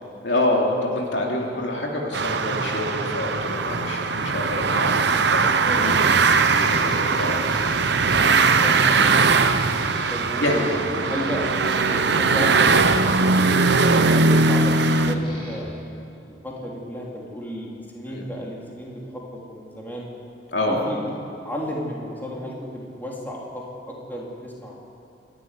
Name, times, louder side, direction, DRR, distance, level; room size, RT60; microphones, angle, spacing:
voice 1, 0.2-6.1 6.4-7.4 10.4-10.6 18.1-18.2 20.5-20.8, left 1 dB, 65° left, -1 dB, 3.4 m, -27 dB
sound 1, 2.1-15.1, right 4 dB, 65° right, 0.9 m, -20 dB
sound 2, 6.2-15.8, equal, 30° left, 7.4 m, -39 dB
voice 2, 8.1-9.2 10.1-10.7 11.0-11.8 12.1-12.7 13.0-13.6 14.0-20.1 20.6-21.0 21.4-24.8, equal, 10° left, -3 dB, 3.5 m, -33 dB
26.5 x 13.0 x 9.9 m, 2.6 s
head